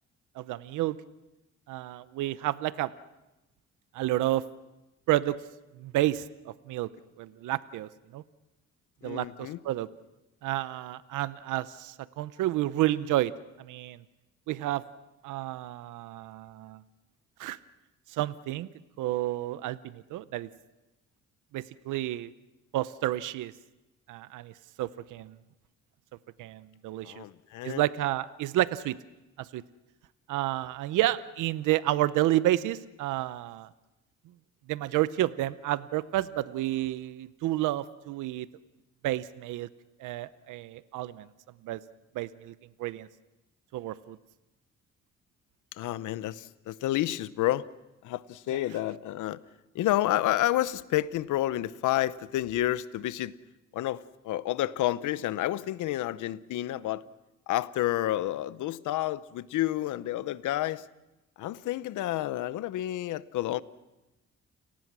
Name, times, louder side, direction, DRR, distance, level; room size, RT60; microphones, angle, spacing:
voice 1, 0.3-1.0 1.7-2.9 3.9-4.5 5.1-5.4 5.8-6.9 7.2-8.2 9.0-9.9 10.4-13.3 13.6-14.0 14.5-14.8 15.2-16.8 17.4-17.6 18.1-18.7 19.0-20.5 21.5-22.3 22.7-23.5 24.1-25.4 26.4-27.2 27.6-29.0 29.4-29.6 30.3-33.7 34.7-38.5 39.0-39.7 40.0-41.3 41.6-41.8 42.1-43.1 43.7-44.2, right 15 dB, 90° right, 0.7 m, -30 dB
voice 2, 9.0-9.6 27.0-27.8 45.7-47.7 48.0-49.4 49.7-53.3 53.7-57.1 57.5-60.9 61.4-63.6, left 14 dB, 80° left, 0.9 m, -30 dB
30.0 x 19.0 x 6.1 m
cardioid pair, 90°, 30 cm